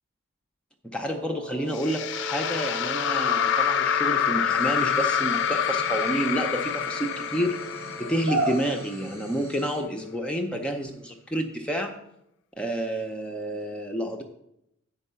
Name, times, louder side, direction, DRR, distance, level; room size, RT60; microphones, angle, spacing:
voice 1, 0.9-7.6 8.0-12.0 12.6-14.2, right 1 dB, 5° left, 2 dB, 0.5 m, -29 dB
Wind instrument woodwind instrument, 1.1-8.4, right 4 dB, 20° right, 0.8 m, -41 dB
sound 1, 1.7-9.0, left 8 dB, 55° left, 0.4 m, -27 dB
sound 2, 4.5-9.8, right 2 dB, 85° right, 1.9 m, -36 dB
9.0 x 4.6 x 5.5 m, 0.81 s
head